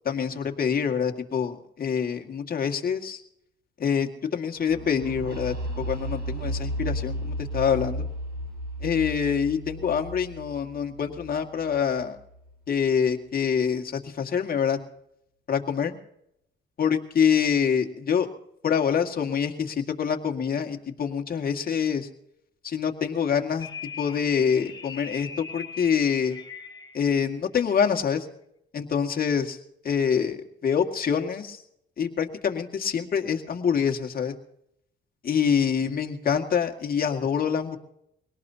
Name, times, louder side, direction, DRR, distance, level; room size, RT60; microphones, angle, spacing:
voice 1, 0.1-3.2 3.8-8.1 8.8-12.2 12.7-14.8 15.5-15.9 16.8-18.3 18.6-22.1 22.6-23.7 24.0-26.4 26.9-28.3 28.7-29.6 29.8-31.6 32.0-34.3 35.2-37.8, left 7 dB, 50° left, 3 dB, 2.0 m, -25 dB
sound 1, 4.7-12.4, equal, 55° right, 5.0 m, -34 dB
sound 2, 23.6-27.1, left 5 dB, 20° left, 3.2 m, -41 dB
23.5 x 18.5 x 2.8 m, 0.78 s
cardioid pair, 90°, 20 cm